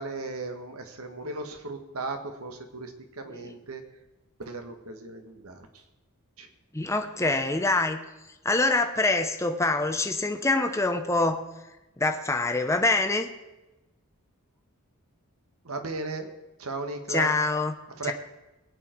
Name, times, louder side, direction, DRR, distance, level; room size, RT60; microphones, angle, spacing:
voice 1, 0.0-3.8 4.4-5.8 6.4-6.5 15.6-16.3 16.6-17.3 18.0-18.1, right 3 dB, 75° right, 6 dB, 1.7 m, -36 dB
voice 2, 6.7-8.0 8.4-11.4 12.0-13.3 17.1-17.7, left 2 dB, 15° left, 5 dB, 0.8 m, -25 dB
22.0 x 9.2 x 4.6 m, 1.0 s
head